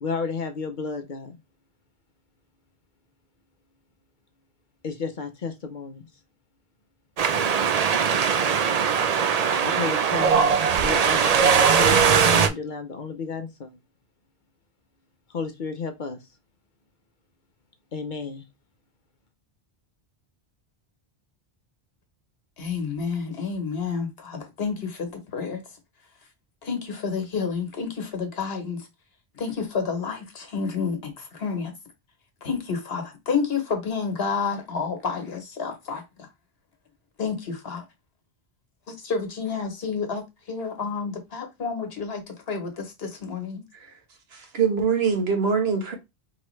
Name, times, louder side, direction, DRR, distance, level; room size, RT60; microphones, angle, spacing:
voice 1, 0.0-1.4 4.8-6.1 9.6-10.5 10.8-13.8 15.3-16.2 17.9-18.4, left 4 dB, 55° left, 0.8 m, -32 dB
Wind, 7.2-12.5, right 6 dB, 50° right, 0.5 m, -20 dB
voice 2, 22.6-25.6 26.6-28.9 29.4-31.7 32.4-36.3 37.2-37.8 38.9-43.6, left 5 dB, 70° left, 1.3 m, -30 dB
voice 3, 44.3-45.9, right 6 dB, 70° right, 1.4 m, -23 dB
4.8 x 3.1 x 3.1 m
omnidirectional pair, 1.1 m